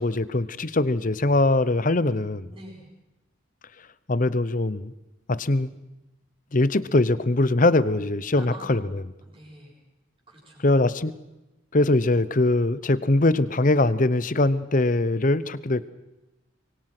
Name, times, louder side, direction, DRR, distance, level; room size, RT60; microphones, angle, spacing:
voice 1, 0.0-2.4 4.1-4.9 5.3-5.7 6.5-9.0 10.6-11.1 11.7-15.9, left 2 dB, 40° left, 16 dB, 0.8 m, -22 dB
voice 2, 2.5-2.9 8.3-8.6 9.2-9.7 10.3-10.7, right 1 dB, 25° right, -9 dB, 7.7 m, -46 dB
25.5 x 23.0 x 6.1 m, 1.0 s
head